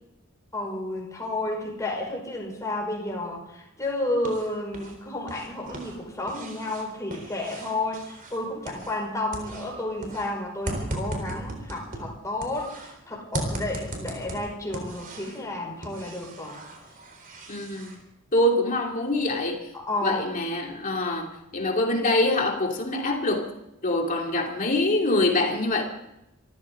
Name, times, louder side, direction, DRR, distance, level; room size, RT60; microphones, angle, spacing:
voice 1, 0.5-16.6 19.7-20.2, left 2 dB, 15° left, -2 dB, 5.7 m, -31 dB
sound 1, 3.8-4.9 5.2-9.1 9.3-12.9 13.3-15.4 15.8-17.9, right 1 dB, 40° right, 4.0 m, -37 dB
voice 2, 17.5-18.0 18.3-19.7 20.0-23.5 23.8-25.8, left 1 dB, 40° left, 1 dB, 2.8 m, -25 dB
26.5 x 14.5 x 3.8 m, 0.84 s
head